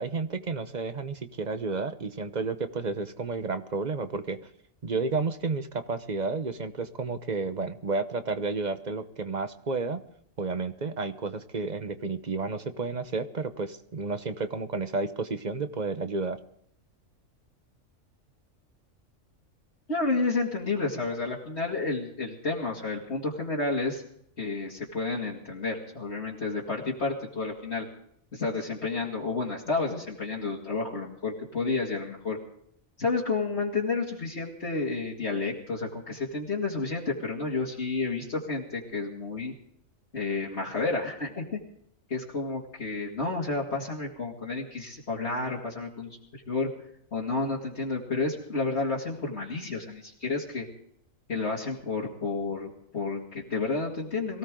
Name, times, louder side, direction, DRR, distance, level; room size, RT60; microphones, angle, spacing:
voice 1, 0.0-4.4 4.8-10.0 10.4-16.4, right 4 dB, 35° right, 10 dB, 1.0 m, -31 dB
voice 2, 19.9-24.0 24.4-27.9 28.3-32.4 33.0-39.5 40.1-41.6 42.1-46.7 47.1-50.7 51.3-54.4, left 3 dB, 55° left, -4 dB, 2.5 m, -31 dB
23.0 x 16.5 x 3.8 m, 0.68 s
omnidirectional pair, 1.4 m